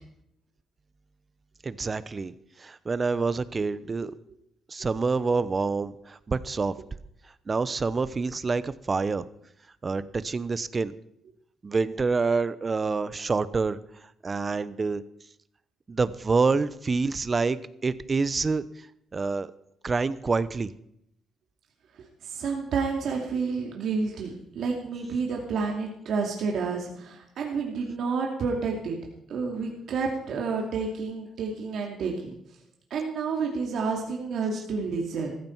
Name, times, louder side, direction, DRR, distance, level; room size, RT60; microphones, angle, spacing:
voice 1, 1.6-2.3 2.6-4.1 4.7-6.7 7.5-9.2 9.8-10.9 11.6-13.8 14.2-15.0 15.9-18.6 19.1-19.5 19.8-20.7, right 4 dB, 30° right, 16 dB, 0.8 m, -27 dB
voice 2, 22.2-29.0 29.3-32.3 32.9-35.3, right 4 dB, 70° right, 0 dB, 2.6 m, -30 dB
14.5 x 14.5 x 4.7 m, 0.75 s
cardioid pair, 90°, 0 cm